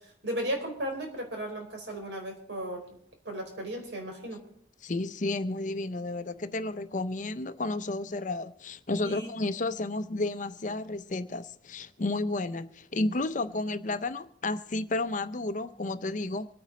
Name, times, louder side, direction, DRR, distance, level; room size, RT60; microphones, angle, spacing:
voice 1, 0.2-2.8 3.2-4.4 9.0-9.3, right 1 dB, 70° right, 4.5 m, -35 dB
voice 2, 4.8-16.5, left 2 dB, 40° left, 0.6 m, -32 dB
25.0 x 9.1 x 4.2 m
head